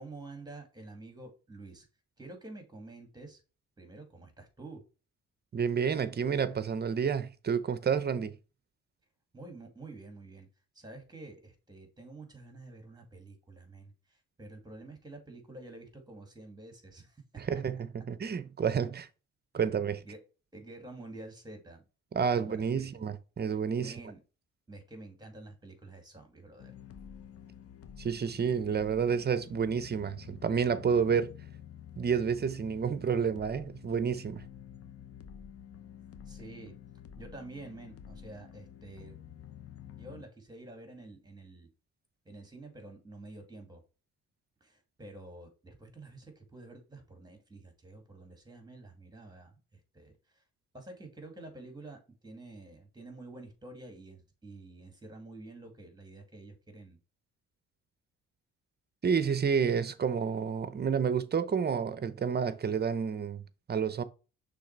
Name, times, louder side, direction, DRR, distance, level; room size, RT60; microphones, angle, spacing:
voice 1, 0.0-1.9 2.2-3.4 3.8-4.8 9.3-10.5 10.7-17.4 19.5-19.6 20.0-20.2 20.5-21.8 22.3-23.0 23.8-24.2 24.7-26.7 36.3-36.7 37.2-39.2 40.0-41.7 42.3-43.8 44.6-49.6 49.9-50.4 50.7-57.0, right 2 dB, 15° right, 2.2 m, -49 dB
voice 2, 5.5-8.3 17.4-19.1 19.5-20.0 22.1-24.0 28.0-31.3 32.0-34.4 59.0-63.4 63.7-64.0, right 6 dB, 35° right, 0.7 m, -30 dB
sound 1, 26.6-40.2, left 9 dB, 50° left, 0.8 m, -49 dB
6.2 x 3.4 x 4.5 m
cardioid pair, 90°, 30 cm